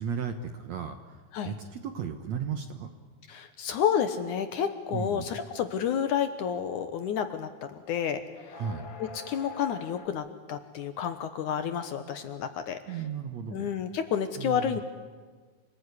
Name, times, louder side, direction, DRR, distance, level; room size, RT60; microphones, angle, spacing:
voice 1, 0.0-1.2 1.4-2.9 4.9-5.3 8.5-8.9 12.9-13.7 14.4-14.8, right 7 dB, 65° right, 7 dB, 1.9 m, -35 dB
voice 2, 3.3-8.6 9.0-13.0 13.5-14.8, left 8 dB, 65° left, 9 dB, 2.2 m, -30 dB
sound 1, 5.0-7.4 7.8-10.1, left 3 dB, 40° left, 2.0 m, -46 dB
28.0 x 19.5 x 9.8 m, 1.4 s
omnidirectional pair, 4.4 m